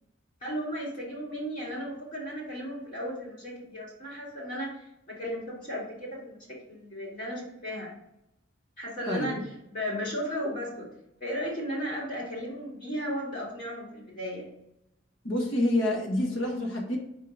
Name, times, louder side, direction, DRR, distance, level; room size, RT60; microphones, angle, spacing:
voice 1, 0.4-6.4 6.7-7.9 8.8-10.9 11.2-14.5, equal, 45° left, -5 dB, 2.3 m, -35 dB
voice 2, 15.2-17.0, left 1 dB, 80° left, 1 dB, 1.5 m, -27 dB
5.3 x 4.4 x 4.9 m, 0.82 s
head